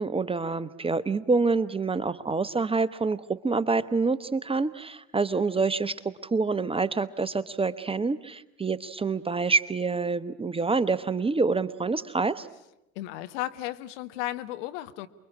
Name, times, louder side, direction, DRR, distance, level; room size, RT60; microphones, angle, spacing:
voice 1, 0.0-12.5, right 4 dB, 15° right, 14 dB, 1.0 m, -27 dB
voice 2, 12.9-15.1, left 15 dB, 60° left, 10 dB, 1.4 m, -34 dB
29.0 x 22.5 x 8.6 m, 0.88 s
figure-of-eight pair, 70°, 40 cm